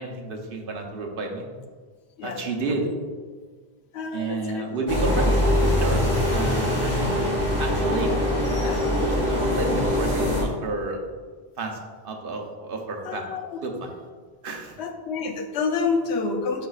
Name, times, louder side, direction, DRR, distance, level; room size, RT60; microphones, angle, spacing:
voice 1, 0.0-1.4 2.2-2.9 4.1-6.0 6.3-7.0 7.6-8.1 8.6-11.0 11.6-11.8 12.0-13.3 13.6-13.9 14.4-14.8, right 3 dB, 60° right, 2 dB, 1.0 m, -31 dB
voice 2, 3.9-4.7 7.2-7.4 8.3-8.8 13.0-13.6 14.8-16.7, left 4 dB, 90° left, 5 dB, 0.9 m, -29 dB
sound 1, 4.9-10.4, left 1 dB, 15° left, 1.8 m, -23 dB
9.8 x 4.1 x 2.4 m, 1.5 s
omnidirectional pair, 1.1 m